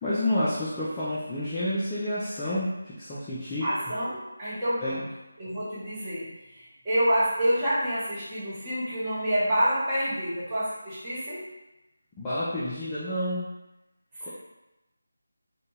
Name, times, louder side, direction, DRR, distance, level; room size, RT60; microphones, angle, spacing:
voice 1, 0.0-3.7 4.8-5.1 12.2-13.5 14.2-14.3, left 1 dB, 10° left, -12 dB, 0.4 m, -29 dB
voice 2, 3.6-5.0 5.4-11.5 14.1-14.3, equal, 15° right, -11 dB, 0.9 m, -28 dB
2.5 x 2.2 x 2.9 m, 0.98 s
figure-of-eight pair, 160°, 0 cm